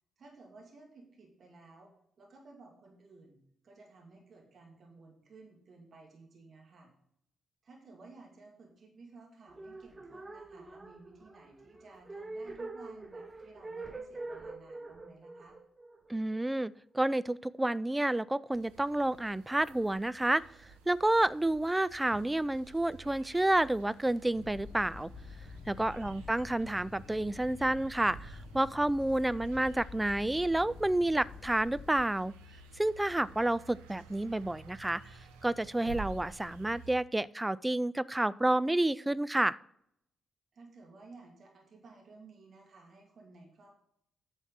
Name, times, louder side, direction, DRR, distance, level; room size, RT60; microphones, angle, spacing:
voice 1, 0.2-1.9 2.2-6.9 7.6-15.6 25.9-26.2 40.5-43.8, right 3 dB, 55° right, 1 dB, 2.6 m, -56 dB
sound 1, 9.5-16.7, right 3 dB, 30° right, 1.0 m, -45 dB
voice 2, 16.1-20.4 20.9-25.1 25.7-32.3 32.8-35.0 35.4-39.6, right 1 dB, 15° right, 18 dB, 0.4 m, -30 dB
sound 2, 18.5-37.0, right 4 dB, 85° right, 0.9 m, -52 dB
sound 3, 24.3-32.0, left 5 dB, 50° left, 0.7 m, -49 dB
9.2 x 6.2 x 5.6 m, 0.71 s
hypercardioid pair, 40°, 0 cm